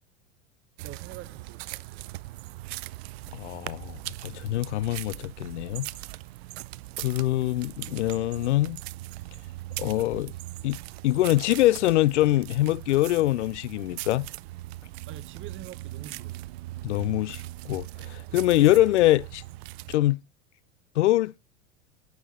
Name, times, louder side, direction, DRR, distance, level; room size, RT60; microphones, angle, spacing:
voice 1, 0.8-2.1 15.1-16.4, right 11 dB, 35° right, 1.1 m, -45 dB
sound 1, 0.8-20.0, right 18 dB, 65° right, 0.5 m, -40 dB
voice 2, 3.4-4.0 4.2-5.9 7.0-8.8 9.8-10.3 10.6-10.8 11.0-14.3 16.8-19.4 19.9-20.2 21.0-21.4, left 16 dB, 80° left, 0.5 m, -24 dB
13.5 x 6.9 x 4.2 m
hypercardioid pair, 100°, 34 cm